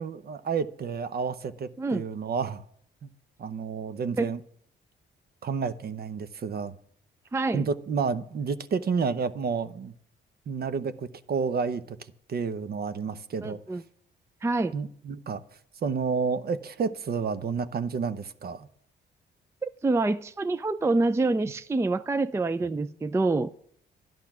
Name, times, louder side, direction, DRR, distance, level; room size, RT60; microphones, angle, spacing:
voice 1, 0.0-2.6 3.0-3.1 3.4-4.4 5.4-6.8 7.5-9.9 10.5-13.6 14.7-15.4 15.8-18.7, right 5 dB, 50° right, 0.9 m, -30 dB
voice 2, 7.3-7.7 13.4-13.8 14.4-14.7 19.6-23.5, right 3 dB, 15° right, 0.4 m, -26 dB
11.5 x 10.5 x 6.0 m
cardioid pair, 90°, 20 cm